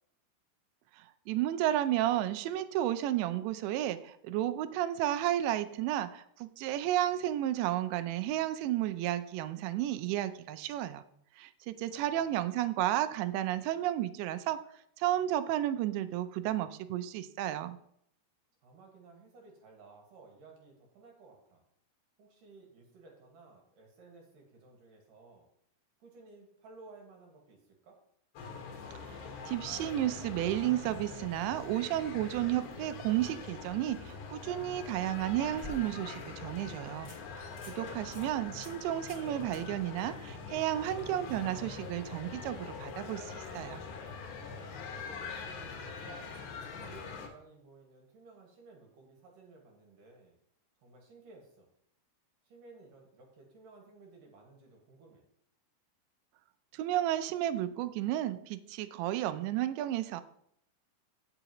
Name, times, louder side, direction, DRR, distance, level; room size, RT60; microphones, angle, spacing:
voice 1, 1.0-11.0 11.4-14.6 15.0-17.8 29.5-37.5 37.8-43.8 56.7-60.2, right 13 dB, 80° right, 12 dB, 2.8 m, -32 dB
voice 2, 11.9-12.4 18.6-21.6 22.2-25.5 26.0-28.0 38.0-38.3 44.9-46.3 46.7-50.4 50.8-51.7 52.4-55.3, right 3 dB, 60° right, 1 dB, 2.7 m, -56 dB
sound 1, 28.4-47.3, left 5 dB, 70° left, 3.6 m, -43 dB
sound 2, 34.9-36.2 36.6-36.7 37.0-37.2 37.5-37.8 38.1-38.3 38.6-38.8 39.1-39.3 39.5-39.6 42.7-42.8, equal, 25° left, 3.3 m, -49 dB
17.0 x 5.8 x 3.0 m, 0.70 s
omnidirectional pair, 5.2 m